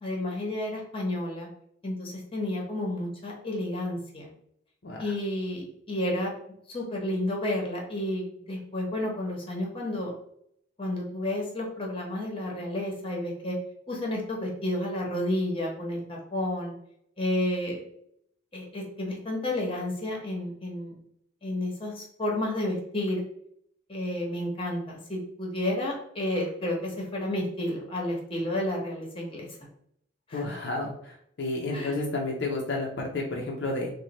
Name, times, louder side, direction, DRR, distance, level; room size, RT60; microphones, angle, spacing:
voice 1, 0.0-1.5 1.8-4.3 5.0-6.3 6.7-10.1 10.8-13.5 13.9-16.7 17.2-17.8 18.5-20.9 21.4-23.2 23.9-29.5 30.3-30.6 31.7-32.0, left 1 dB, 25° left, -1 dB, 0.9 m, -31 dB
voice 2, 30.3-33.9, left 2 dB, 60° left, -1 dB, 0.6 m, -31 dB
3.1 x 2.2 x 4.0 m, 0.70 s
head